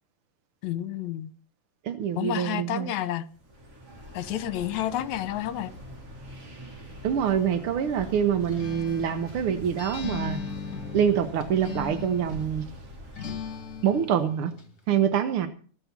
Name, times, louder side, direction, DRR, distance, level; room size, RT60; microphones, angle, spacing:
voice 1, 0.6-1.3 2.2-3.3 4.1-5.7, left 12 dB, 70° left, 2.2 m, -30 dB
voice 2, 1.8-2.9 7.0-10.4 10.9-12.6 13.8-14.5 14.9-15.5, right 8 dB, 65° right, 1.3 m, -25 dB
sound 1, 3.3-14.2, equal, 45° right, 4.8 m, -44 dB
Acoustic guitar, 8.4-12.6 13.2-14.7, left 5 dB, 30° left, 2.5 m, -38 dB
19.5 x 7.9 x 7.3 m
omnidirectional pair, 3.6 m